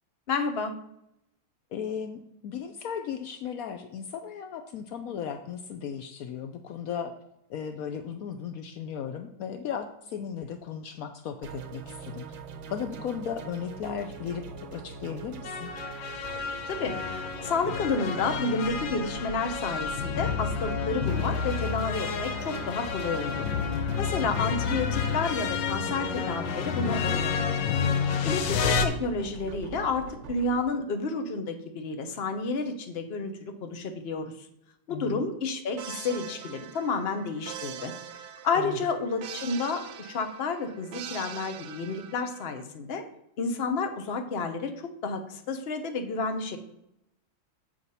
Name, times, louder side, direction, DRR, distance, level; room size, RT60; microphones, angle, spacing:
voice 1, 0.3-0.7 16.7-16.9 17.4-23.5 24.0-27.7 28.2-34.5 34.9-37.9 38.4-43.0 43.4-46.6, left 4 dB, 50° left, 6 dB, 0.7 m, -30 dB
voice 2, 1.7-7.1 7.5-12.2 12.7-14.4 14.7-15.7 24.1-24.3 28.2-28.6 34.9-35.3 38.5-38.8, left 7 dB, 85° left, 8 dB, 0.7 m, -36 dB
sound 1, 11.4-30.6, right 5 dB, 90° right, 1.7 m, -43 dB
sound 2, 15.4-28.9, left 6 dB, 70° left, 1.4 m, -30 dB
sound 3, 35.8-42.6, right 8 dB, 70° right, 1.3 m, -43 dB
7.9 x 5.0 x 5.5 m, 0.78 s
omnidirectional pair, 2.2 m